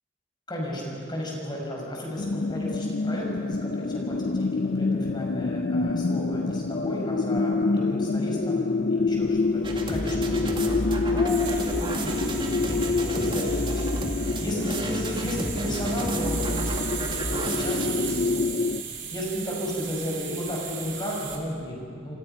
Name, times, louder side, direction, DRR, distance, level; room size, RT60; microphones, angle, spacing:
voice 1, 0.5-12.3 12.7-13.9 14.4-18.7 18.9-22.2, equal, 25° left, -2 dB, 6.4 m, -33 dB
sound 1, 2.2-18.8, left 3 dB, 50° left, 0.5 m, -27 dB
sound 2, 9.1-21.4, right 8 dB, 75° right, 3.6 m, -37 dB
sound 3, 9.6-17.9, right 1 dB, 30° right, 2.4 m, -31 dB
28.0 x 27.0 x 5.8 m, 2.3 s
head